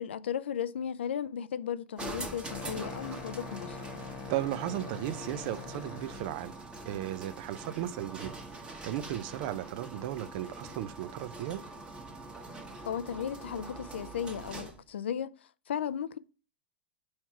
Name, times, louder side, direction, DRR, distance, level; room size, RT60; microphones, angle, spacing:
voice 1, 0.0-3.8 12.9-15.3 15.7-16.2, left 8 dB, 85° left, 0.4 m, -35 dB
sound 1, 2.0-14.9, right 2 dB, 15° right, 1.2 m, -44 dB
sound 2, 2.4-6.4, left 6 dB, 45° left, 1.1 m, -44 dB
voice 2, 4.3-6.5 6.9-8.4 8.8-11.6, right 13 dB, 55° right, 0.5 m, -35 dB
4.6 x 4.3 x 5.8 m
hypercardioid pair, 115°, 6 cm